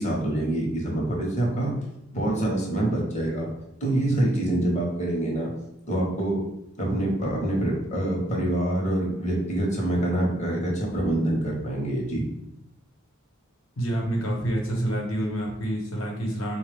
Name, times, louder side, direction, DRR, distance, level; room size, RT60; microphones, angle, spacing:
voice 1, 0.0-1.7 2.1-3.5 3.8-5.5 5.9-6.4 6.8-12.2, right 1 dB, 35° left, -2 dB, 1.0 m, -25 dB
voice 2, 13.8-16.6, right 1 dB, 70° left, -1 dB, 1.0 m, -28 dB
4.1 x 2.3 x 3.4 m, 0.84 s
head